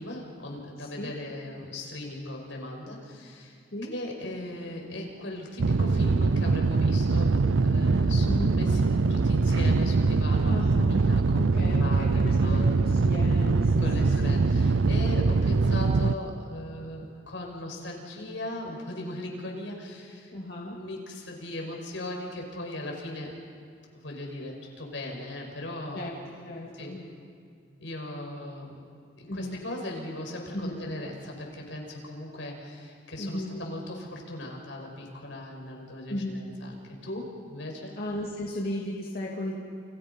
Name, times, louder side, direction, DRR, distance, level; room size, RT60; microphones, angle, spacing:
voice 1, 0.0-3.6 3.9-7.4 7.6-8.3 8.6-12.8 13.8-20.3 20.6-23.4 23.9-26.1 26.7-27.0 27.8-28.9 29.2-36.7 37.0-37.9, left 1 dB, 85° left, 0 dB, 5.8 m, -38 dB
voice 2, 0.8-1.1 3.7-3.9 8.3-8.5 10.5-11.0 11.4-14.4 20.3-20.8 25.9-26.1 26.4-27.0 29.3-29.6 30.5-30.8 33.2-33.6 36.1-36.4 38.0-39.5, left 1 dB, 55° left, -3 dB, 2.6 m, -35 dB
sound 1, 5.6-16.1, right 3 dB, 90° right, 0.6 m, -23 dB
30.0 x 29.0 x 5.5 m, 2.2 s
head